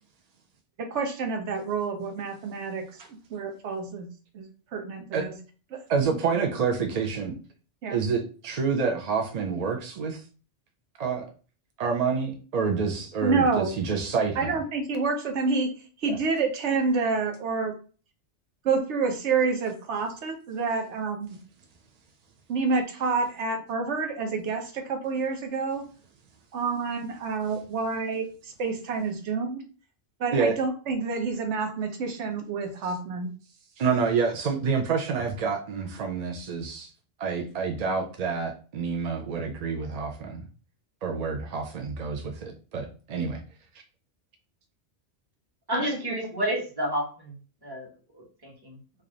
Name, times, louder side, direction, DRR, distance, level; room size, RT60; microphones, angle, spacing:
voice 1, 0.9-2.8 3.3-4.1 4.3-5.4 5.7-5.8 7.8-8.0 13.2-13.7 14.4-15.7 16.0-17.7 18.6-21.4 22.5-25.8 26.5-29.6 30.2-33.3 45.7-45.8 46.1-46.3, right 4 dB, 85° right, 4 dB, 1.0 m, -28 dB
voice 2, 5.9-7.4 7.9-10.2 11.0-11.2 11.8-14.5 16.1-16.2 30.3-30.6 33.8-36.9 37.2-40.4 41.0-43.4, right 5 dB, 55° right, 3 dB, 0.4 m, -28 dB
voice 3, 45.7-47.3 47.6-47.9 48.4-48.8, equal, 20° right, -3 dB, 1.1 m, -29 dB
3.3 x 2.4 x 3.8 m, 0.38 s
omnidirectional pair, 1.1 m